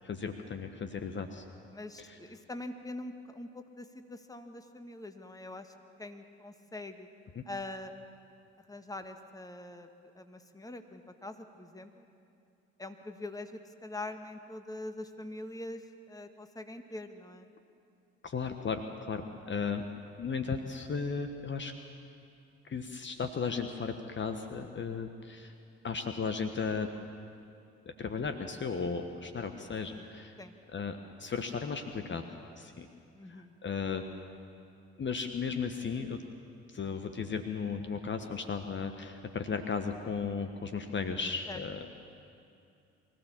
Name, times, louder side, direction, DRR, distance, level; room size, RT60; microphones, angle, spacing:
voice 1, 0.0-1.4 2.0-2.2 7.3-7.4 18.2-19.8 20.2-21.7 22.7-25.5 25.8-26.9 28.0-30.4 30.7-32.2 32.6-32.9 33.3-34.0 35.0-36.2 36.7-41.9, left 5 dB, 35° left, 7 dB, 1.3 m, -35 dB
voice 2, 1.7-7.1 7.5-7.9 8.7-9.9 10.2-12.1 12.8-17.5 19.4-19.5 30.4-30.5 33.2-33.5 41.5-41.6, left 2 dB, 10° left, 7 dB, 1.8 m, -43 dB
24.0 x 15.0 x 7.4 m, 2.6 s
hypercardioid pair, 50°, 32 cm